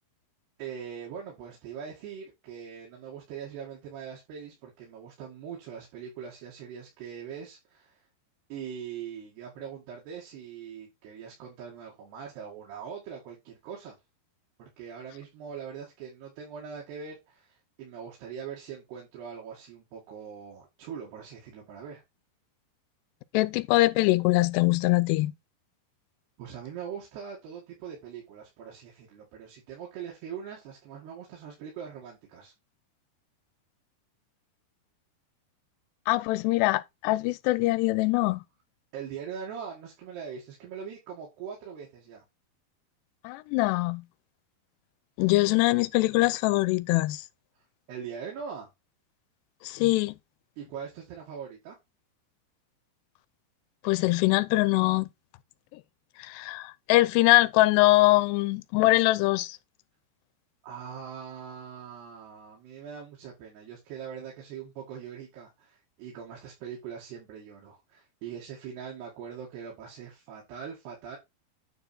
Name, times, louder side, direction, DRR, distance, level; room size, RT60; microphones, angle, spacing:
voice 1, 0.6-8.0 8.5-14.0 14.6-22.0 26.4-32.5 38.9-42.2 47.9-48.7 50.6-51.8 60.6-71.2, right 7 dB, 75° right, 4.1 m, -42 dB
voice 2, 23.3-25.3 36.1-38.4 43.2-44.0 45.2-47.2 49.6-50.2 53.8-55.1 55.7-55.8 56.2-59.6, left 19 dB, 90° left, 2.7 m, -23 dB
9.5 x 4.3 x 4.3 m
omnidirectional pair, 4.8 m